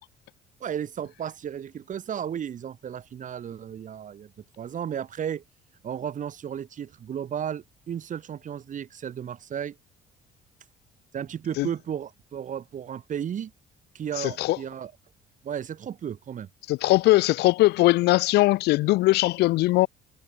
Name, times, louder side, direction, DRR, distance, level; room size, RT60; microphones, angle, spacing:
voice 1, 0.6-4.3 4.6-5.4 5.8-9.8 11.1-13.5 13.9-14.9 15.4-16.5, right 9 dB, 50° right, 7.7 m, -34 dB
voice 2, 14.2-14.6 16.7-19.9, left 19 dB, 75° left, 0.5 m, -20 dB
cardioid pair, 110°, 17 cm